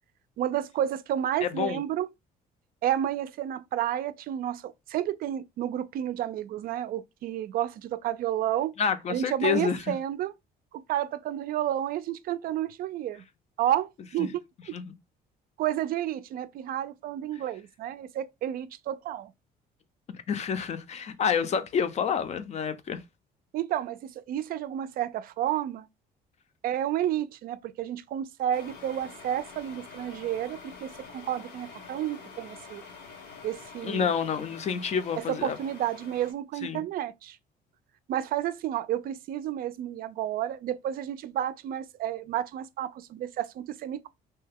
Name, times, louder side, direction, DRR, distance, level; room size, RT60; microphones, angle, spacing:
voice 1, 0.4-2.1 2.8-8.7 9.1-10.3 10.7-13.2 13.6-14.4 15.6-19.3 23.5-25.9 26.6-32.8 33.4-34.1 35.3-37.4 38.1-44.1, right 11 dB, 60° right, 0.4 m, -31 dB
voice 2, 1.4-1.8 8.8-9.8 14.2-14.3 14.7-14.9 20.3-23.0 33.8-35.6 36.6-36.8, left 7 dB, 40° left, 0.5 m, -28 dB
sound 1, 28.5-36.3, left 5 dB, 75° left, 1.0 m, -47 dB
2.8 x 2.2 x 3.4 m
cardioid pair, 110°, 17 cm